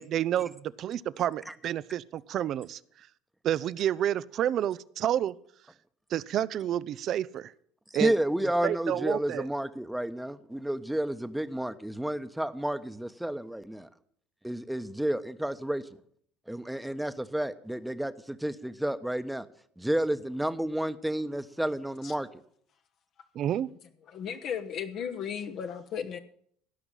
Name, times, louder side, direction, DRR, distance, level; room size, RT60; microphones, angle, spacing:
voice 1, 0.0-2.8 3.4-5.3 6.1-7.5 7.9-8.1 8.6-9.5 23.3-23.7, right 11 dB, 55° right, 0.5 m, -29 dB
voice 2, 7.9-13.9 14.4-15.8 16.5-19.5 19.8-22.3, right 1 dB, 5° right, 1.0 m, -31 dB
voice 3, 24.1-26.2, left 7 dB, 55° left, 1.0 m, -35 dB
16.5 x 6.0 x 8.9 m
hypercardioid pair, 70°, 0 cm